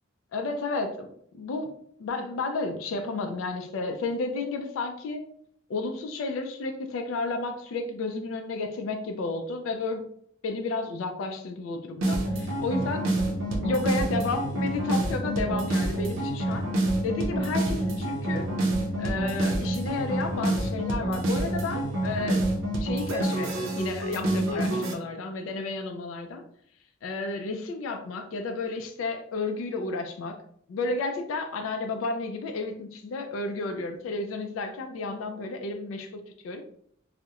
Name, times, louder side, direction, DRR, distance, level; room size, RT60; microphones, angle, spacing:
voice 1, 0.3-1.1 1.3-1.7 2.0-5.2 5.7-10.0 10.4-16.6 17.0-18.5 19.0-22.4 22.8-26.4 27.0-30.4 30.7-36.6, left 3 dB, 85° left, 5 dB, 0.3 m, -32 dB
sound 1, 12.0-24.9, right 1 dB, 80° right, 0.5 m, -27 dB
2.8 x 2.0 x 2.3 m, 0.66 s
head